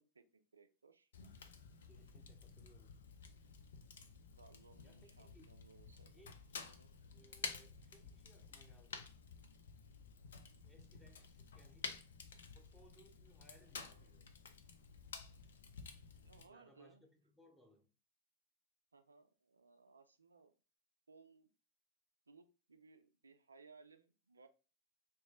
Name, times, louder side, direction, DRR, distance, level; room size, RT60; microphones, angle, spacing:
voice 1, 0.1-1.1 4.4-6.1 6.8-6.9 16.2-17.1 18.9-20.5 21.1-21.5 22.3-24.5, right 4 dB, 85° right, 0.4 m, -63 dB
Fire, 1.1-16.5, left 5 dB, 75° left, 0.4 m, -52 dB
voice 2, 1.9-3.0 4.8-5.5 6.0-6.8 7.1-9.1 10.6-12.1 12.5-14.3 16.4-17.9, equal, 5° left, 0.9 m, -67 dB
3.0 x 2.3 x 3.7 m
figure-of-eight pair, 85°, 0 cm